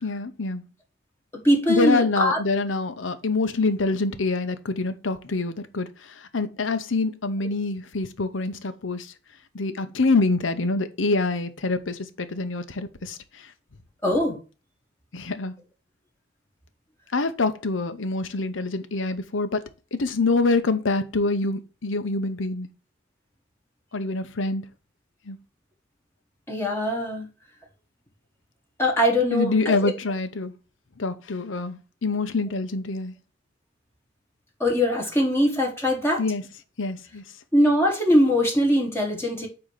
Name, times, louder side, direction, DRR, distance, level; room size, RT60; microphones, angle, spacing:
voice 1, 0.0-0.6 1.7-9.1 9.5-13.5 15.1-15.6 17.1-19.6 19.9-22.7 23.9-24.6 25.3-25.4 29.3-30.5 31.0-33.1 36.2-36.4 36.8-37.2, left 3 dB, 85° left, 0.8 m, -26 dB
voice 2, 1.4-2.4 14.0-14.4 26.5-27.3 28.8-29.9 34.6-36.2 37.5-39.5, equal, 15° left, 1.6 m, -21 dB
8.8 x 3.0 x 6.4 m
head